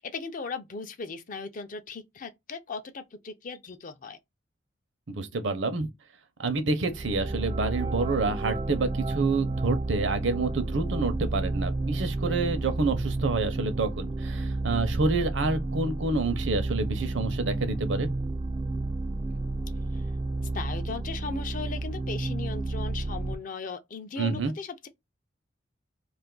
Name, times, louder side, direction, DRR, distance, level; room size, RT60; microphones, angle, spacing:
voice 1, 0.0-4.2 19.9-20.0 20.5-24.9, left 4 dB, 40° left, 0.5 m, -37 dB
voice 2, 5.1-5.9 6.4-18.1 24.2-24.5, right 3 dB, 65° right, 0.7 m, -28 dB
sound 1, 6.9-23.3, right 2 dB, 25° right, 0.3 m, -31 dB
2.6 x 2.5 x 3.7 m
head